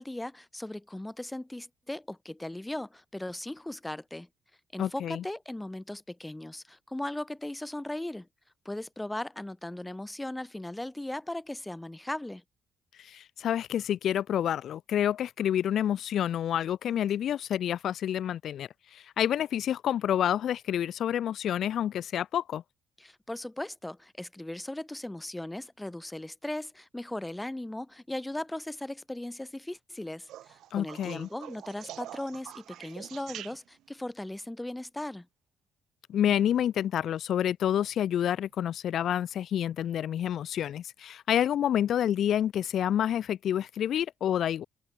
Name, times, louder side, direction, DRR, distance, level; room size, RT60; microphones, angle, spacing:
voice 1, 0.0-4.3 4.7-8.3 8.7-12.4 23.0-35.3, left 1 dB, 10° left, 1.9 m, -38 dB
voice 2, 4.8-5.2 12.9-22.6 30.7-31.3 36.1-44.6, left 10 dB, 70° left, 0.8 m, -28 dB
sound 1, 30.3-34.0 36.1-36.6 38.3-38.4, right 13 dB, 80° right, 1.9 m, -45 dB
cardioid pair, 90°, 0 cm